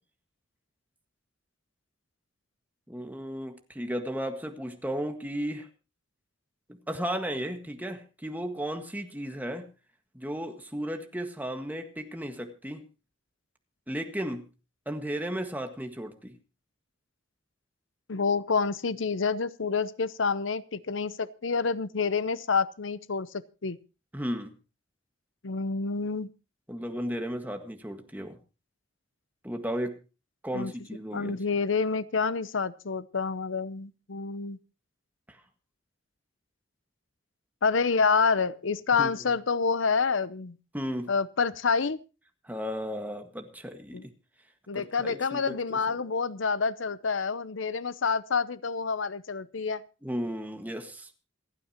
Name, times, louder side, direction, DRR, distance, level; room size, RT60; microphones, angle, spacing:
voice 1, 2.9-5.7 6.7-9.7 10.1-12.8 13.9-14.5 14.9-16.4 24.1-24.5 26.7-28.4 29.4-30.0 30.4-31.4 39.0-39.1 40.7-41.1 42.4-44.1 44.7-46.0 50.0-51.1, equal, 10° right, 5 dB, 1.7 m, -34 dB
voice 2, 18.1-23.3 23.6-23.8 25.4-26.3 30.5-30.7 31.1-34.6 37.6-40.6 41.1-42.0 43.9-44.0 44.7-49.8, left 5 dB, 85° left, 16 dB, 0.8 m, -28 dB
27.5 x 9.2 x 2.9 m, 0.31 s
head